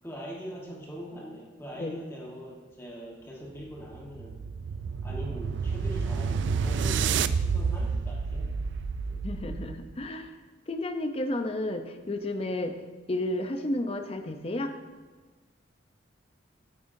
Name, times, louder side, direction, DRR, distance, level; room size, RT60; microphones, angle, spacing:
voice 1, 0.0-4.4 5.0-8.7 9.1-9.2, equal, 15° left, -3 dB, 1.2 m, -42 dB
sound 1, 3.8-9.9, right 5 dB, 70° right, 0.3 m, -29 dB
voice 2, 9.2-10.3 10.7-12.8 13.1-14.7, left 1 dB, 30° left, 7 dB, 0.5 m, -32 dB
9.0 x 9.0 x 2.6 m, 1.4 s
head